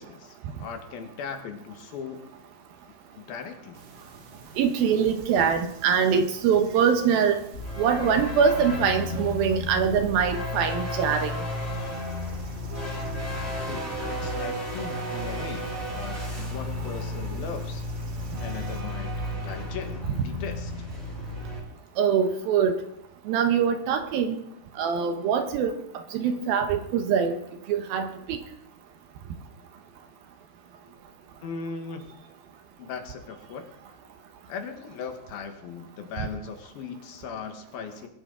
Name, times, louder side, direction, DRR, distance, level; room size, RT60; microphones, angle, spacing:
voice 1, 0.0-2.2 3.2-3.8 13.7-17.8 18.4-19.2 19.4-20.7 31.4-32.0 32.8-33.6 34.5-38.1, left 6 dB, 70° left, 6 dB, 3.0 m, -38 dB
sound 1, 3.7-18.8, right 3 dB, 55° right, 2.6 m, -46 dB
voice 2, 4.6-7.4 7.8-11.3 22.0-22.7 23.3-24.4 24.8-25.8 26.1-27.4 27.7-28.4, right 7 dB, 70° right, 7 dB, 2.5 m, -23 dB
sound 2, 7.4-21.6, right 1 dB, 15° right, 3.9 m, -37 dB
sound 3, 7.5-21.5, left 2 dB, 20° left, 3.9 m, -35 dB
22.5 x 12.0 x 3.7 m, 0.79 s
omnidirectional pair, 4.7 m